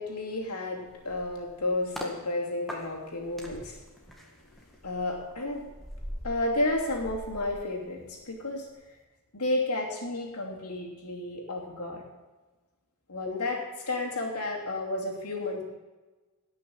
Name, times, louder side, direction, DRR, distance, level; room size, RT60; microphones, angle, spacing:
voice 1, 0.0-3.8 4.8-5.7 6.2-8.7 9.3-12.0 13.1-15.6, left 2 dB, 85° left, -1 dB, 2.9 m, -32 dB
sound 1, 0.9-2.2 2.7-8.3 8.6-8.8, equal, ahead, 1.9 m, -43 dB
18.0 x 6.3 x 6.4 m, 1.2 s
head